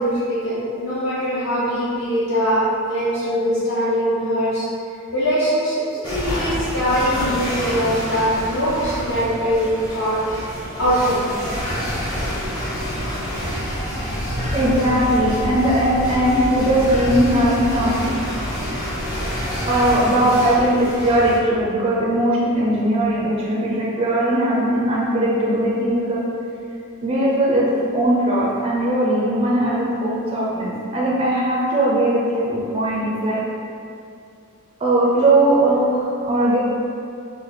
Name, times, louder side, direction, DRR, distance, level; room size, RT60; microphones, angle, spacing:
voice 1, 0.0-4.7 5.1-10.2 10.8-11.4, equal, 50° left, -10 dB, 0.6 m, -22 dB
sound 1, 6.0-21.4, equal, 20° left, 0.7 m, -27 dB
voice 2, 14.5-18.0 19.7-26.2 27.0-33.4 34.8-36.6, right 1 dB, 25° right, -6 dB, 0.4 m, -19 dB
3.2 x 2.3 x 3.8 m, 2.5 s
head